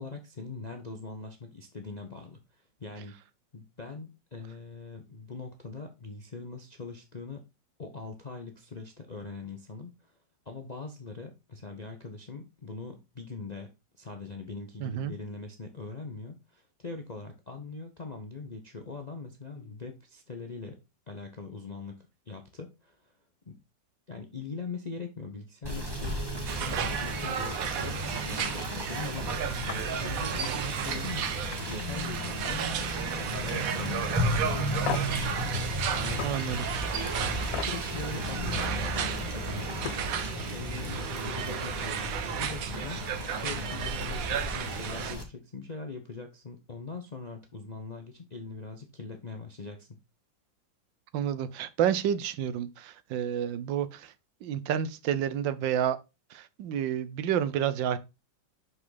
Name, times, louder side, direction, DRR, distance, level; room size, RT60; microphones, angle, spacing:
voice 1, 0.0-3.2 3.5-7.4 7.8-10.1 10.5-20.8 21.1-23.1 23.5-23.6 24.1-32.9 33.2-36.3 37.3-39.8 40.5-50.0, left 4 dB, 45° left, 0.5 m, -42 dB
voice 2, 14.8-15.1 36.2-36.7 51.1-54.1 54.4-56.0 56.3-58.0, right 9 dB, 80° right, 1.4 m, -29 dB
Rain / Motor vehicle (road), 25.6-45.2, equal, 15° right, 1.2 m, -34 dB
sound 1, 26.5-45.2, right 9 dB, 60° right, 1.0 m, -34 dB
sound 2, 29.7-29.8 30.2-30.5 30.9-31.1 31.5-32.7 33.0-33.4 33.8-33.9 34.8-35.2 36.2-36.3 37.5-37.7 39.4-39.5 39.8-40.1, left 11 dB, 80° left, 1.3 m, -37 dB
6.2 x 5.7 x 3.9 m
omnidirectional pair, 2.0 m